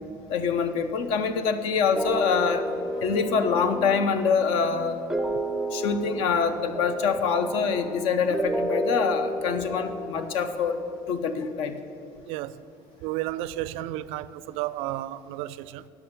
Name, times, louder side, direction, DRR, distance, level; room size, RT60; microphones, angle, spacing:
voice 1, 0.3-2.7 3.0-5.0 5.7-10.8 11.1-11.8, left 5 dB, 70° left, 0.9 m, -25 dB
sound 1, 1.9-11.1, right 1 dB, ahead, 0.5 m, -32 dB
sound 2, 2.7-9.6, right 1 dB, 40° left, 2.3 m, -46 dB
voice 2, 12.3-12.6 13.0-15.9, right 15 dB, 75° right, 0.4 m, -32 dB
10.5 x 6.1 x 8.2 m
cardioid pair, 125°, 10 cm